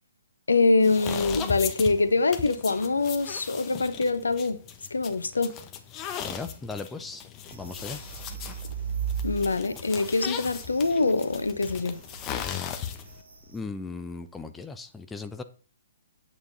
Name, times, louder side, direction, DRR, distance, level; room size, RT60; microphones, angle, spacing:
voice 1, 0.5-4.6 4.9-5.5 9.2-12.0, left 3 dB, 75° left, 1.3 m, -24 dB
sound 1, 0.8-13.2, left 9 dB, 25° left, 1.3 m, -37 dB
voice 2, 6.2-7.2 7.5-8.0 13.5-15.4, left 4 dB, 10° left, 0.8 m, -37 dB
sound 2, 7.5-13.6, right 7 dB, 65° right, 2.7 m, -38 dB
9.8 x 8.3 x 4.1 m
figure-of-eight pair, 125°, 0 cm